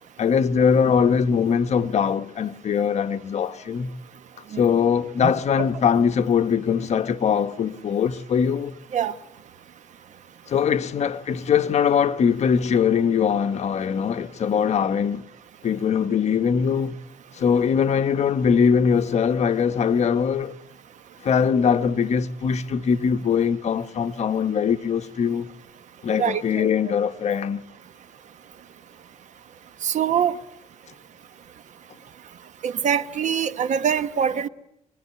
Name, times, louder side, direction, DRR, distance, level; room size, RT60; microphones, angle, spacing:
voice 1, 0.2-3.9 4.6-8.7 10.5-15.2 15.6-17.0 17.3-20.5 21.2-25.5 26.0-27.6, left 7 dB, 55° left, 1.2 m, -21 dB
voice 2, 26.1-26.7 29.8-30.4 32.6-34.5, right 8 dB, 60° right, 1.2 m, -24 dB
25.5 x 21.0 x 9.6 m
cardioid pair, 110°, 14 cm